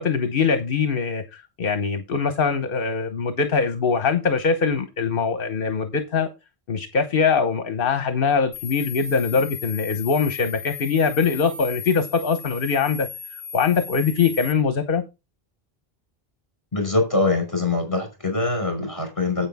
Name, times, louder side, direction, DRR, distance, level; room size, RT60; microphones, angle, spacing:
voice 1, 0.0-6.3 6.7-13.1 13.5-15.0, left 5 dB, 60° left, 1.2 m, -22 dB
sound 1, 8.5-14.5, left 7 dB, 30° right, 5.4 m, -37 dB
voice 2, 16.7-19.5, left 3 dB, 30° left, 5.1 m, -23 dB
9.8 x 8.3 x 3.5 m
omnidirectional pair, 1.1 m